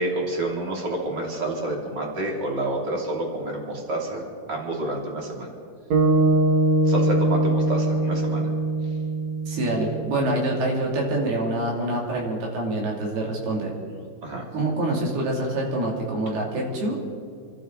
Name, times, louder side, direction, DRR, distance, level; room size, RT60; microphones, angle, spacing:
voice 1, 0.0-5.5 6.8-8.5 14.2-14.4, right 2 dB, 30° right, -1 dB, 2.8 m, -29 dB
sound 1, 5.9-10.3, right 2 dB, 55° right, 2.6 m, -22 dB
voice 2, 9.5-13.7 14.5-17.0, right 1 dB, 70° right, -2 dB, 4.6 m, -26 dB
28.0 x 12.5 x 3.9 m, 2.2 s
omnidirectional pair, 4.7 m